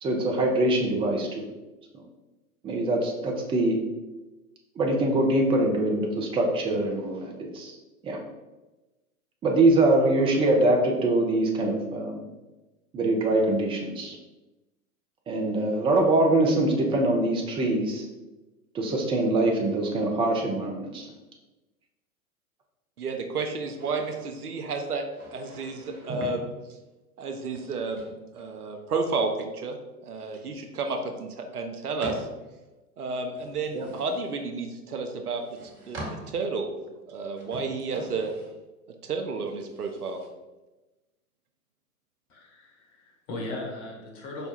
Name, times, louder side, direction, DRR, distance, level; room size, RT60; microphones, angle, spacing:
voice 1, 0.0-1.5 2.6-3.8 4.8-7.7 8.0-8.2 9.4-12.3 12.9-14.2 15.3-18.1 18.7-21.1 33.7-33.9, right 2 dB, 10° right, 1 dB, 0.5 m, -23 dB
voice 2, 23.0-25.0 25.3-26.5 27.2-29.8 30.0-32.3 33.0-35.4 35.9-36.7 37.1-38.3 39.0-40.2, right 4 dB, 80° right, 4 dB, 0.8 m, -31 dB
sound 1, 23.8-24.3 25.1-26.4 27.5-28.8 30.2-30.6 31.0-31.1 32.0-32.4 33.4-34.3 35.3-36.4 37.3-38.5 39.5-40.3, right 2 dB, 40° right, 1.4 m, -42 dB
voice 3, 42.3-44.5, left 2 dB, 40° left, 0 dB, 1.3 m, -38 dB
5.4 x 2.3 x 4.2 m, 1.1 s
figure-of-eight pair, 100°, 44 cm